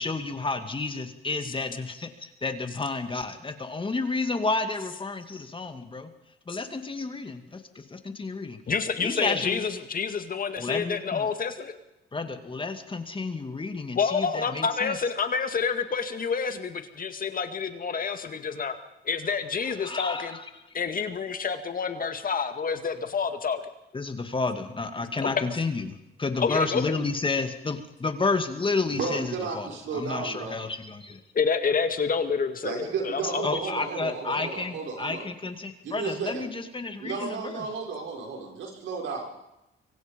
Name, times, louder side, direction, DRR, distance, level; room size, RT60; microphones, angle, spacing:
voice 1, 0.0-6.1 6.5-8.6 9.0-9.7 10.6-11.3 12.1-15.0 19.8-20.5 23.9-31.2 33.4-37.7, left 3 dB, 25° left, 7 dB, 2.4 m, -31 dB
voice 2, 8.7-11.7 13.9-18.8 19.0-20.4 20.7-23.6 25.2-25.4 26.4-26.9 31.3-33.6, left 5 dB, 45° left, 8 dB, 2.1 m, -28 dB
voice 3, 28.9-30.6 32.6-35.3 35.8-36.5 37.0-39.3, right 4 dB, 75° right, 1 dB, 6.1 m, -33 dB
25.0 x 24.0 x 5.4 m, 0.90 s
cardioid pair, 90°, 20 cm